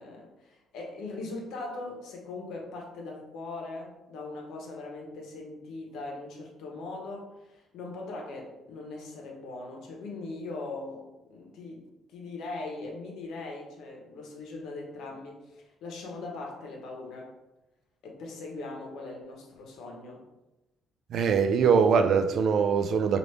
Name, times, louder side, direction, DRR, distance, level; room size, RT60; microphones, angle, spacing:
voice 1, 0.0-17.3 18.0-20.2, left 3 dB, 70° left, 0 dB, 0.9 m, -40 dB
voice 2, 21.1-23.2, right 6 dB, 50° right, 8 dB, 0.3 m, -22 dB
4.9 x 2.5 x 3.2 m, 0.97 s
cardioid pair, 165°, 0 cm